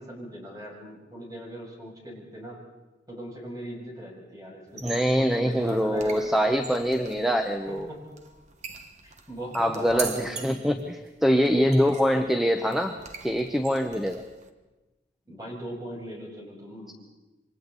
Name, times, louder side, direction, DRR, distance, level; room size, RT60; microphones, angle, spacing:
voice 1, 0.0-2.6 3.1-6.6 7.7-8.1 9.0-10.5 11.6-11.8 12.1-12.2 15.3-16.9, equal, 20° right, -3 dB, 6.8 m, -39 dB
sound 1, 4.7-14.5, right 5 dB, 40° right, 1.4 m, -42 dB
voice 2, 4.8-7.9 9.5-14.2, equal, ahead, 5 dB, 0.9 m, -24 dB
28.0 x 25.0 x 4.1 m, 1.1 s
head